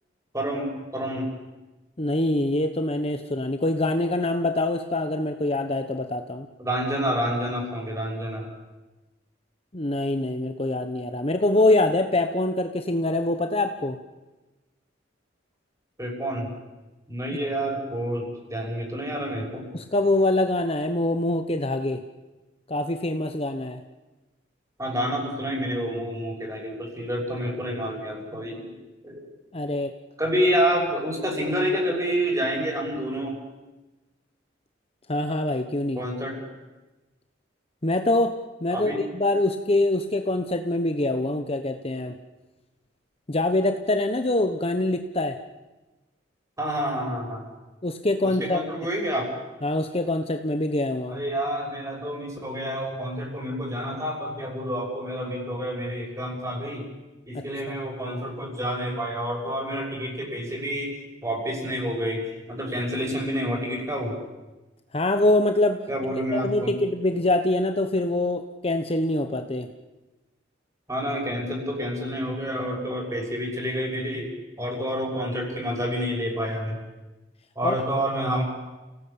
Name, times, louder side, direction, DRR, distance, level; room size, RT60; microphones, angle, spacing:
voice 1, 0.3-1.3 6.6-8.5 16.0-16.5 17.1-19.7 24.8-28.8 29.0-29.2 30.2-33.4 35.9-36.4 38.7-39.0 46.6-47.5 48.2-49.4 51.1-56.9 57.3-61.0 61.2-64.2 65.9-66.7 70.9-74.3 74.6-76.8 77.5-78.4, equal, 15° right, 1 dB, 6.3 m, -28 dB
voice 2, 2.0-6.5 9.7-14.0 19.7-22.0 22.7-23.8 29.5-29.9 35.1-36.0 37.8-42.1 43.3-45.4 47.8-48.6 49.6-51.2 64.9-65.8 66.3-69.7 77.6-77.8, left 2 dB, 30° left, 6 dB, 1.1 m, -24 dB
29.5 x 17.5 x 8.7 m, 1.1 s
head